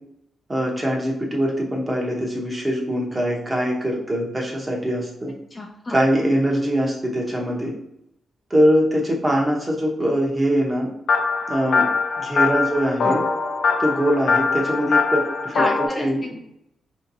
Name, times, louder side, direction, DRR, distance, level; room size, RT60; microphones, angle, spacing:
voice 1, 0.5-5.3 5.9-7.7 8.5-10.9 11.5-11.9 12.2-13.2 13.8-15.6 16.0-16.2, equal, 15° right, -1 dB, 0.9 m, -22 dB
voice 2, 5.5-6.0 13.0-13.1 15.5-16.4, left 1 dB, 25° left, 1 dB, 0.5 m, -29 dB
sound 1, 11.1-15.9, left 4 dB, 85° left, 0.5 m, -22 dB
5.0 x 2.8 x 2.6 m, 0.79 s
wide cardioid pair, 130°, 0 cm